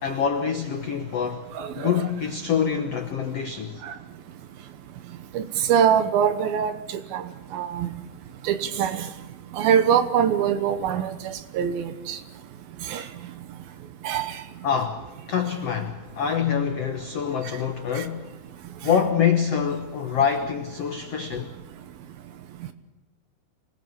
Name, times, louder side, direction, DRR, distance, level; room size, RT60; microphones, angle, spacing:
voice 1, 0.0-1.5 1.8-3.8 14.6-18.4 18.8-21.5, left 7 dB, 75° left, 1.4 m, -25 dB
voice 2, 1.6-2.0 3.9-4.0 5.3-5.4 5.7-6.8 7.1-7.2 7.5-7.9 8.5-9.0 9.6-11.1 11.5-12.2 12.9-13.0 14.0-14.3, right 8 dB, 70° right, 2.7 m, -23 dB
25.0 x 19.0 x 7.2 m
omnidirectional pair, 4.7 m